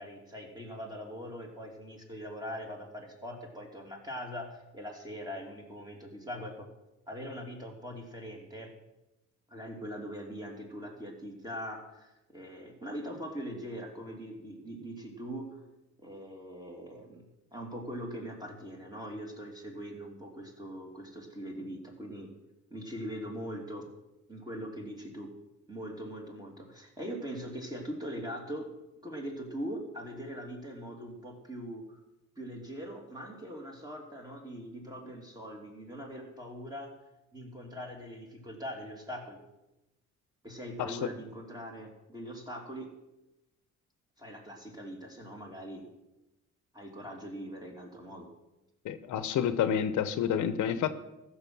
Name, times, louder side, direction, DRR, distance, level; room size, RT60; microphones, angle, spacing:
voice 1, 0.0-6.7 7.1-8.7 9.5-15.6 16.0-22.3 22.7-23.9 24.3-25.3 25.7-28.7 29.0-32.0 32.4-36.9 37.3-39.4 40.4-42.9 44.2-45.8 46.7-48.3, equal, 15° right, 1 dB, 2.8 m, -41 dB
voice 2, 40.8-41.1 48.8-50.9, left 9 dB, 75° left, 12 dB, 0.8 m, -29 dB
14.5 x 6.5 x 6.1 m, 0.96 s
cardioid pair, 90°, 30 cm